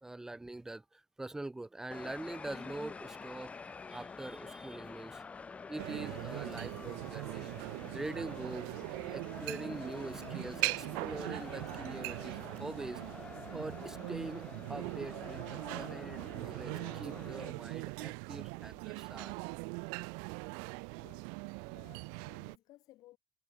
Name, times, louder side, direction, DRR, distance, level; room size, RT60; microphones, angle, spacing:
voice 1, 0.0-3.5 3.9-5.3 5.7-7.5 7.9-8.7 9.1-13.2 13.5-19.3, right 2 dB, 5° right, 0.4 m, -44 dB
sound 1, 1.9-17.5, left 5 dB, 15° left, 0.9 m, -48 dB
sound 2, 5.8-22.6, right 40 dB or more, 75° right, 1.1 m, -41 dB
voice 2, 20.9-21.3 21.7-23.2, left 16 dB, 50° left, 4.4 m, -60 dB
cardioid pair, 150°, 8 cm